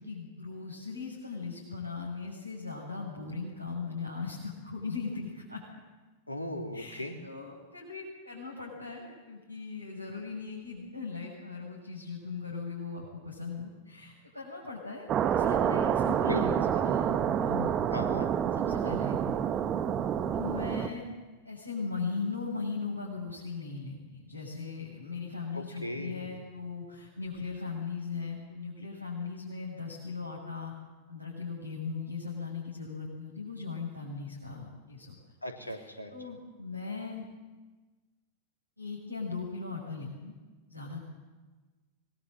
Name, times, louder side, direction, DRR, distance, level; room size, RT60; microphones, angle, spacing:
voice 1, 0.0-5.6 6.7-17.7 18.5-19.2 20.3-21.1 21.4-30.7 31.1-35.1 35.6-37.2 38.8-40.3 40.7-41.0, left 4 dB, 90° right, -4 dB, 6.7 m, -38 dB
voice 2, 6.3-7.1 16.2-16.6 17.9-18.3 25.5-26.3 35.4-36.1, left 1 dB, 85° left, 4 dB, 3.2 m, -37 dB
sound 1, 15.1-20.9, right 9 dB, 30° right, 1.6 m, -28 dB
25.0 x 21.5 x 7.8 m, 1.3 s
figure-of-eight pair, 90°, 0 cm